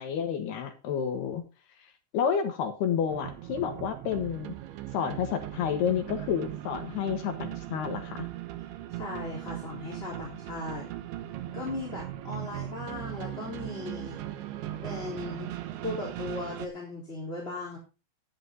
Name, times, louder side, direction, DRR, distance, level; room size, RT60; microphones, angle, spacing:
voice 1, 0.0-1.4 2.1-4.6 4.9-8.3, left 7 dB, 65° left, 7 dB, 3.2 m, -30 dB
sound 1, 3.1-16.7, right 13 dB, 75° right, 3.4 m, -39 dB
voice 2, 8.9-10.9 11.5-14.2 14.8-17.8, left 2 dB, 15° left, -3 dB, 3.3 m, -37 dB
13.0 x 10.5 x 4.0 m, 0.30 s
omnidirectional pair, 5.5 m